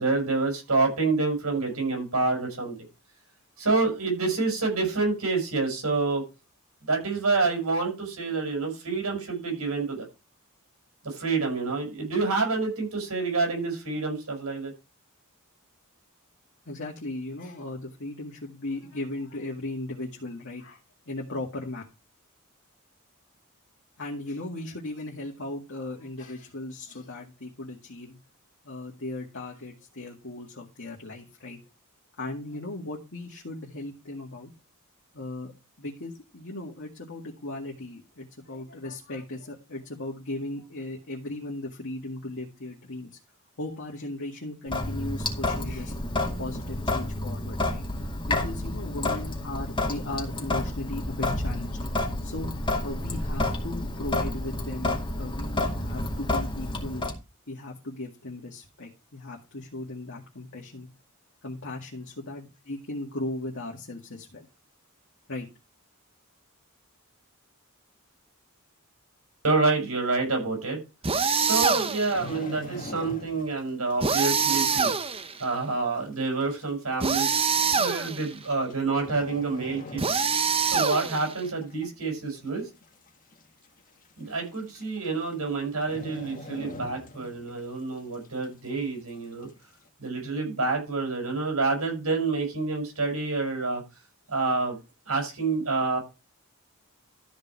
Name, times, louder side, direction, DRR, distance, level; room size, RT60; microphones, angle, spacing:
voice 1, 0.0-2.8 3.6-6.2 6.9-10.1 11.0-14.7 69.4-70.8 71.4-74.9 75.4-77.3 77.7-80.0 80.7-82.6 84.2-89.5 90.0-93.8 94.3-94.8 95.1-96.0, right 3 dB, 80° right, 2 dB, 6.3 m, -27 dB
voice 2, 16.7-20.8 21.1-21.8 24.0-28.2 28.6-31.6 32.2-34.5 35.1-35.5 35.8-43.1 43.6-45.9 46.4-47.8 48.3-51.9 52.2-57.1 57.5-60.9 61.4-64.5 65.3-65.5, left 2 dB, 60° left, -3 dB, 2.1 m, -37 dB
Sink (filling or washing) / Drip, 44.7-57.1, left 2 dB, 25° left, 2.3 m, -30 dB
sound 1, 71.0-72.2 74.0-75.4 77.0-78.3 80.0-81.4, right 5 dB, 25° right, 0.8 m, -25 dB
sound 2, 71.9-73.6 73.9-74.2 74.7-74.8 75.7-75.8 76.1-76.2 77.0-77.2 78.3-78.7 79.0-80.6 80.9-81.1 81.6-82.1 82.5-82.6 82.8-82.9 83.3-83.4 84.4-84.5 84.8-85.1 85.3-85.5 85.8-87.5 87.8-87.9, left 1 dB, 40° left, 1.4 m, -41 dB
13.5 x 5.3 x 4.7 m, 0.28 s
head